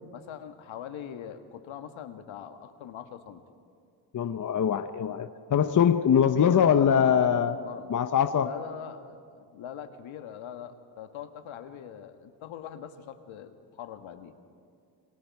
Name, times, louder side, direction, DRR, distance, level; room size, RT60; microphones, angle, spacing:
voice 1, 0.0-3.4 6.0-7.9 8.4-14.3, left 9 dB, 70° left, 8 dB, 1.7 m, -42 dB
voice 2, 4.1-7.6 7.9-8.5, left 8 dB, 40° left, 9 dB, 0.9 m, -23 dB
28.5 x 22.0 x 4.8 m, 2.4 s
supercardioid pair, 75°, 50 cm